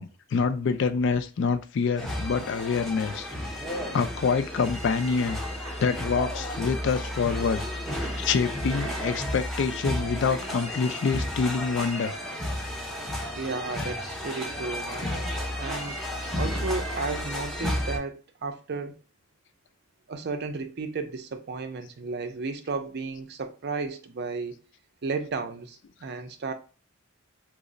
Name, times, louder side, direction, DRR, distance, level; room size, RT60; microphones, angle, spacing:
voice 1, 0.0-3.3 3.9-5.4 5.8-7.7 8.0-12.1, left 5 dB, 60° left, 0.3 m, -26 dB
sound 1, 2.0-18.0, left 1 dB, ahead, 0.5 m, -32 dB
voice 2, 13.3-15.1 15.6-16.0 16.3-18.9 20.1-24.6 25.0-26.5, right 4 dB, 55° right, 0.5 m, -33 dB
3.0 x 2.0 x 3.7 m
head